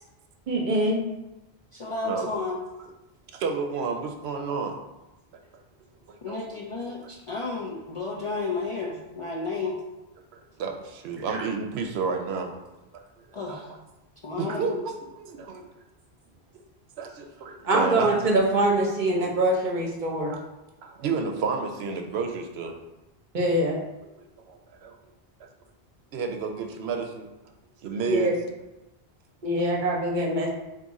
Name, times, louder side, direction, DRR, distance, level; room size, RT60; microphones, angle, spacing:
voice 1, 0.5-1.0 11.3-11.5 17.6-20.3 23.3-23.8 28.1-28.3 29.4-30.5, right 1 dB, 50° right, -1 dB, 0.9 m, -24 dB
voice 2, 1.7-2.6 6.2-9.8 13.3-13.7 14.2-14.8, left 3 dB, 50° left, -3 dB, 0.4 m, -32 dB
voice 3, 3.3-4.8 6.1-6.4 10.3-12.5 12.9-13.0 13.5-13.6 14.4-15.7 17.0-18.1 20.3-20.4 20.8-22.7 24.2-25.0 25.4-25.5 26.1-27.3 27.8-28.3, right 5 dB, 85° right, 4 dB, 0.8 m, -31 dB
3.6 x 2.7 x 4.0 m, 1.0 s
omnidirectional pair, 1.0 m